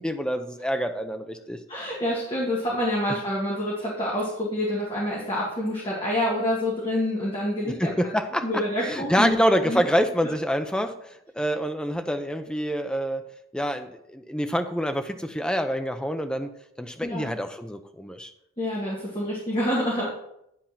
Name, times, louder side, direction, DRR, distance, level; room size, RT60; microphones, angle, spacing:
voice 1, 0.0-1.6 7.6-13.2 13.5-16.5 16.8-18.3, equal, 5° left, 7 dB, 0.5 m, -27 dB
voice 2, 1.7-7.9 8.4-9.8 17.0-17.3 18.6-20.1, left 1 dB, 25° left, -6 dB, 2.0 m, -27 dB
10.0 x 4.4 x 5.7 m, 0.79 s
head